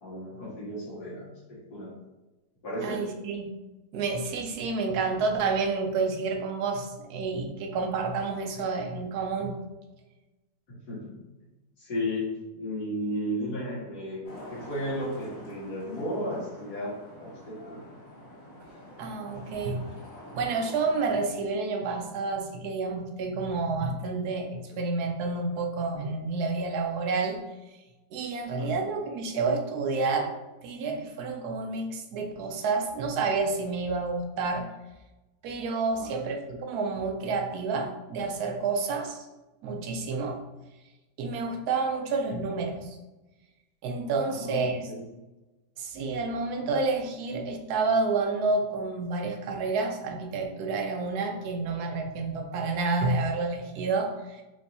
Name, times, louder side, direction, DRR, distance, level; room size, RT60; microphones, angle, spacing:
voice 1, 0.0-1.9 2.6-3.0 10.7-11.1 11.8-14.2 14.5-16.9 17.2-17.8 24.7-24.8 28.6-28.7 35.9-36.1 44.2-45.0, equal, 70° left, -7 dB, 2.1 m, -34 dB
voice 2, 2.8-3.5 3.9-9.6 19.0-19.9 20.3-27.4 28.1-30.3 30.6-34.7 35.4-39.3 39.6-40.4 41.2-43.0 43.8-44.9 45.8-54.4, right 4 dB, 75° right, 3 dB, 1.1 m, -29 dB
Traffic noise roadway noise, 14.2-21.1, left 1 dB, 55° left, 2.0 m, -46 dB
4.5 x 3.1 x 2.7 m, 1.1 s
omnidirectional pair, 1.7 m